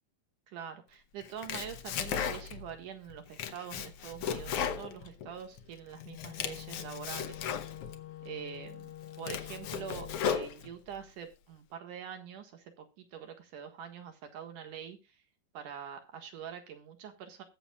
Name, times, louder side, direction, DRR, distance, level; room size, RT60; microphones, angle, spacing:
voice 1, 0.5-7.6 8.2-8.9 9.2-15.2 15.5-17.4, right 8 dB, 75° right, 6 dB, 3.1 m, -44 dB
Domestic sounds home sounds, 1.2-2.7 3.1-5.6 6.0-8.0 8.5-8.6 9.0-11.0, left 8 dB, 70° left, 1.4 m, -36 dB
Wind instrument woodwind instrument, 5.9-10.4, left 14 dB, 90° left, 1.2 m, -47 dB
21.0 x 7.2 x 2.4 m, 0.28 s
omnidirectional pair, 3.8 m